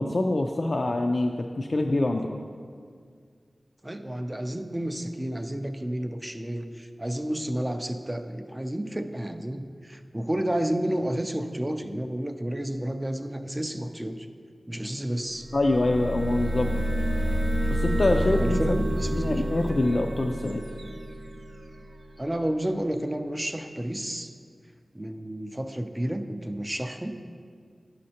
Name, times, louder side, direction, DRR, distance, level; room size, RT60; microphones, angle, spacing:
voice 1, 0.0-2.3 15.5-16.8 17.7-18.8 19.1-20.6, left 2 dB, 55° left, 2 dB, 0.3 m, -25 dB
voice 2, 3.8-14.3 14.7-15.5 18.4-19.4 22.2-24.3 24.9-27.2, right 1 dB, 20° right, 7 dB, 0.4 m, -31 dB
sound 1, 15.4-22.1, equal, 65° right, 0.7 m, -28 dB
9.9 x 6.4 x 2.8 m, 2.1 s
wide cardioid pair, 80°, 0 cm